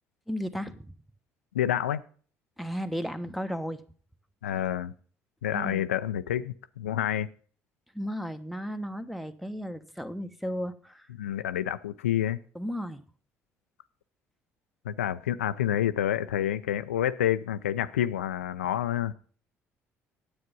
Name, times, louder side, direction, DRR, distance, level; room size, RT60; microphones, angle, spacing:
voice 1, 0.3-1.0 2.6-3.8 5.5-5.9 7.9-11.1 12.5-13.0, equal, ahead, 1.1 m, -34 dB
voice 2, 1.5-2.0 4.4-4.9 5.4-7.3 11.2-12.4 14.8-19.1, left 11 dB, 90° left, 0.4 m, -28 dB
9.8 x 8.0 x 5.3 m
hypercardioid pair, 55°, 7 cm